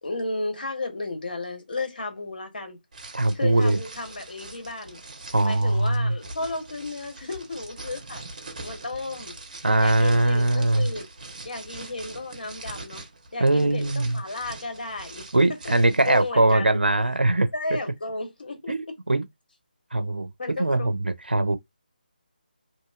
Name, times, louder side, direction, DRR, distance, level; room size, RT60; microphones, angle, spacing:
voice 1, 0.0-2.8 3.3-5.0 5.4-8.2 8.6-9.3 9.8-11.1 11.4-13.0 13.3-15.3 16.1-16.8 17.5-18.7 20.4-20.9, left 2 dB, 60° left, 1.1 m, -33 dB
sound 1, 2.9-16.3, right 2 dB, 50° right, 1.0 m, -43 dB
voice 2, 3.1-3.8 5.3-6.1 9.6-10.9 13.4-14.2 15.3-17.5 18.7-19.2 19.9-21.6, right 2 dB, 90° right, 0.5 m, -21 dB
2.9 x 2.7 x 2.4 m
figure-of-eight pair, 155°, 5 cm